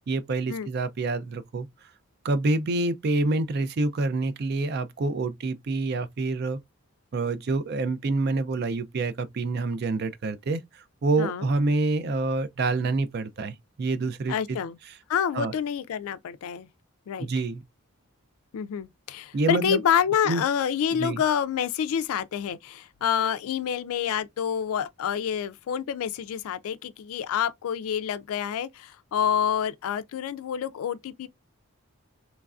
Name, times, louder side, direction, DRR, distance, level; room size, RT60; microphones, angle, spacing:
voice 1, 0.1-1.7 2.2-6.6 7.1-14.6 15.3-15.5 17.2-17.6 19.3-19.8 20.2-20.4 20.9-21.2, right 3 dB, 45° right, 0.3 m, -27 dB
voice 2, 11.2-11.5 14.3-14.8 15.1-16.7 17.1-17.3 18.5-31.3, left 8 dB, 75° left, 0.3 m, -28 dB
3.1 x 2.4 x 2.2 m
head